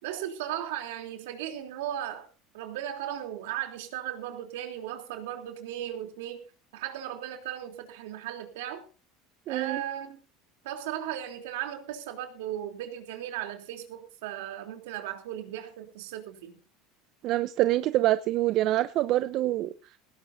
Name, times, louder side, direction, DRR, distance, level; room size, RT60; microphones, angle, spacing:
voice 1, 0.0-2.3 2.5-6.4 6.7-8.8 9.5-10.2 10.6-16.6, right 11 dB, 80° right, 3.4 m, -36 dB
voice 2, 9.5-9.8 17.2-20.0, right 15 dB, 55° right, 0.8 m, -26 dB
18.5 x 18.0 x 2.7 m
supercardioid pair, 105°, 0 cm